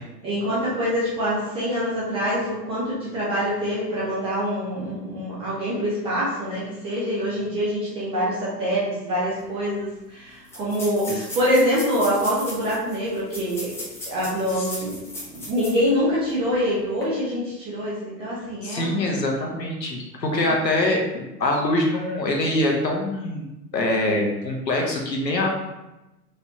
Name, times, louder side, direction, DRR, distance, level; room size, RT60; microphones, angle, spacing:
voice 1, 0.2-13.7 14.1-15.0 15.3-19.0 20.4-20.5, equal, 10° right, -7 dB, 0.4 m, -25 dB
sound 1, 9.4-9.5 9.7-9.8 10.4-15.9 16.3-16.4 16.9-17.0, left 1 dB, 5° left, 0.8 m, -37 dB
voice 2, 18.6-23.5 23.7-25.5, left 1 dB, 85° left, 0 dB, 0.9 m, -24 dB
4.6 x 2.6 x 2.8 m, 0.97 s
figure-of-eight pair, 95°, 49 cm